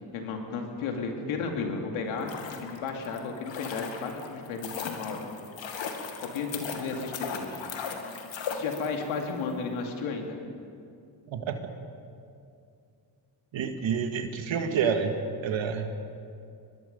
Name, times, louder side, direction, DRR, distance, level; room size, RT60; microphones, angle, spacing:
voice 1, 0.1-2.3 2.6-5.2 6.2-7.6 8.5-10.4, left 4 dB, 85° left, 2 dB, 2.6 m, -33 dB
sound 1, 2.0-9.2 9.5-9.6, left 5 dB, 70° left, 2.3 m, -38 dB
voice 2, 13.5-15.1 15.4-15.9, right 7 dB, 70° right, 6 dB, 2.0 m, -28 dB
23.5 x 21.5 x 5.4 m, 2.4 s
supercardioid pair, 55°, 47 cm